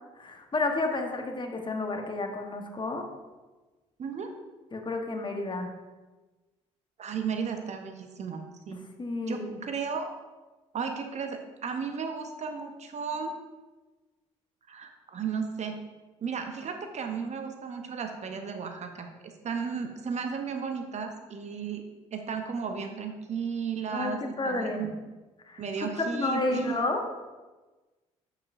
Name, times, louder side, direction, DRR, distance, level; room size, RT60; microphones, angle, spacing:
voice 1, 0.2-3.1 4.7-5.7 9.0-9.6 23.9-24.9 25.5-25.6 26.0-27.0, left 2 dB, 30° left, 4 dB, 1.1 m, -31 dB
voice 2, 4.0-4.3 7.0-8.8 9.3-10.1 10.7-13.4 14.7-15.8 16.2-21.8 22.1-24.9 25.6-26.8, right 6 dB, 45° right, 5 dB, 0.8 m, -34 dB
8.4 x 4.9 x 2.6 m, 1.2 s
hypercardioid pair, 50°, 16 cm